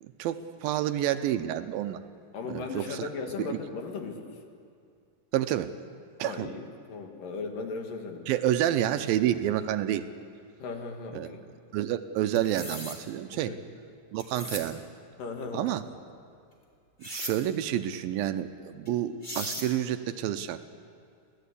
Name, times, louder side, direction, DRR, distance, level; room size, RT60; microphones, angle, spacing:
voice 1, 0.0-2.0 2.5-3.1 3.4-3.6 5.3-5.7 6.2-6.5 8.3-10.0 11.1-11.3 11.7-13.5 14.1-14.8 15.5-15.8 17.0-20.6, right 12 dB, 80° right, 10 dB, 2.4 m, -29 dB
voice 2, 2.3-4.3 6.2-8.2 10.6-11.4 13.3-13.6 15.2-15.6, left 4 dB, 65° left, 3 dB, 3.4 m, -37 dB
sound 1, 12.3-13.0 14.2-14.7 17.0-17.3 18.8-18.9 19.2-19.7, equal, 15° left, 2.7 m, -37 dB
26.0 x 16.5 x 8.4 m, 2.4 s
omnidirectional pair, 4.3 m